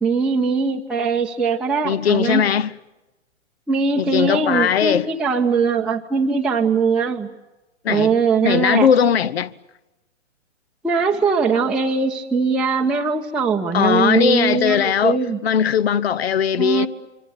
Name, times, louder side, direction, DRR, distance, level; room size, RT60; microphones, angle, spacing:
voice 1, 0.0-2.4 3.7-7.3 7.9-8.9 10.8-15.4 16.6-16.9, right 5 dB, ahead, 0.9 m, -21 dB
voice 2, 1.8-2.7 4.0-5.1 7.8-9.5 13.7-16.9, left 8 dB, 55° left, 1.0 m, -19 dB
26.0 x 24.5 x 7.9 m
figure-of-eight pair, 125°, 37 cm